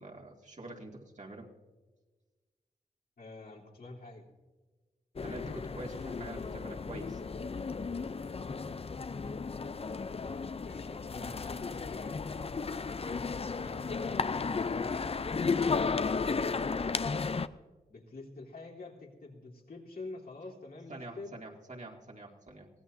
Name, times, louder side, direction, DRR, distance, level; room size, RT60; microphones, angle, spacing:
voice 1, 0.0-1.5 5.2-7.2 20.9-22.7, right 2 dB, 45° right, 0 dB, 2.4 m, -46 dB
voice 2, 3.2-4.3 10.2-12.3 12.9-15.0 15.3-17.0 17.9-21.4, left 3 dB, 70° left, -3 dB, 3.4 m, -47 dB
sound 1, 5.2-17.5, left 4 dB, 35° left, 0.5 m, -34 dB
22.5 x 16.0 x 2.7 m, 1.3 s
cardioid pair, 55°, 16 cm